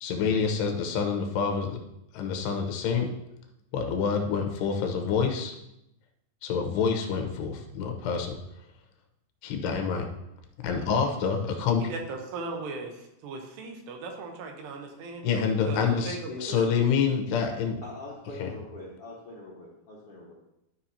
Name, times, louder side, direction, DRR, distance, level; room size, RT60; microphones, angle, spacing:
voice 1, 0.0-1.8 2.1-3.1 3.7-5.6 6.4-8.4 9.4-10.1 10.6-11.9 15.2-17.8 18.4-18.5, left 6 dB, 80° left, 4 dB, 3.0 m, -27 dB
voice 2, 11.8-15.3 15.7-16.2 16.5-16.6, right 3 dB, 80° right, 3 dB, 3.1 m, -38 dB
voice 3, 17.8-20.4, left 2 dB, 65° left, -6 dB, 1.4 m, -42 dB
13.0 x 5.6 x 2.8 m, 0.83 s
omnidirectional pair, 4.9 m